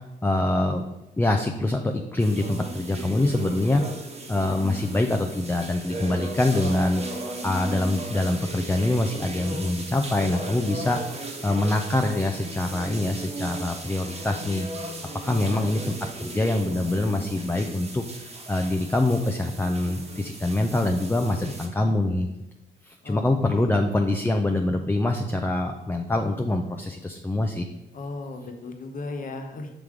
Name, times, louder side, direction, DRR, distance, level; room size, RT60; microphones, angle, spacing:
voice 1, 0.2-0.8 1.2-3.8 4.3-7.0 7.4-11.1 11.4-14.9 15.2-22.3 22.8-27.7, left 2 dB, 10° left, 4 dB, 0.4 m, -25 dB
sound 1, 2.2-21.7, right 1 dB, 30° right, 1.2 m, -37 dB
voice 2, 15.2-15.7 23.0-23.8 27.9-29.7, left 3 dB, 40° left, 5 dB, 0.9 m, -36 dB
6.0 x 3.6 x 4.8 m, 0.99 s
cardioid pair, 90°, 20 cm